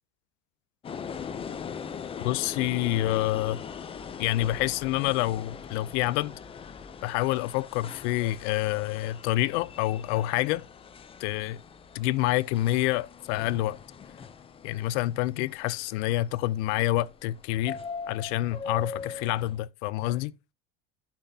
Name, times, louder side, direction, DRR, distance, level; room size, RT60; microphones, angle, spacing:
sound 1, 0.8-19.6, left 6 dB, 15° left, 0.5 m, -41 dB
voice 1, 2.2-3.6 4.2-6.3 7.0-10.6 11.2-11.6 11.9-13.8 14.6-17.8 18.1-20.3, left 16 dB, 80° left, 0.6 m, -27 dB
11.5 x 5.9 x 2.7 m
cardioid pair, 160°, 34 cm